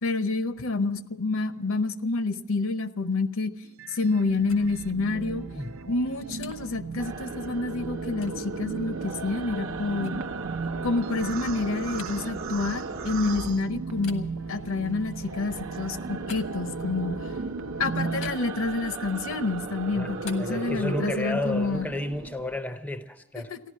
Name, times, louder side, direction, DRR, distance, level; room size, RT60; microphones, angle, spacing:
voice 1, 0.0-3.5 3.9-5.4 5.9-10.2 10.8-17.2 17.8-21.9 23.4-23.6, left 3 dB, 65° left, 0.7 m, -28 dB
sound 1, 3.6-18.3, right 4 dB, 85° right, 0.6 m, -37 dB
sound 2, 4.2-7.6 8.2-8.4 9.0-13.4 14.0-17.2 18.2-19.3 19.6-21.4, left 5 dB, 90° left, 1.4 m, -50 dB
sound 3, 7.0-14.3 14.6-22.6, right 4 dB, 65° right, 1.0 m, -37 dB
voice 2, 20.4-23.5, left 1 dB, 5° left, 0.5 m, -32 dB
15.0 x 11.5 x 7.3 m
head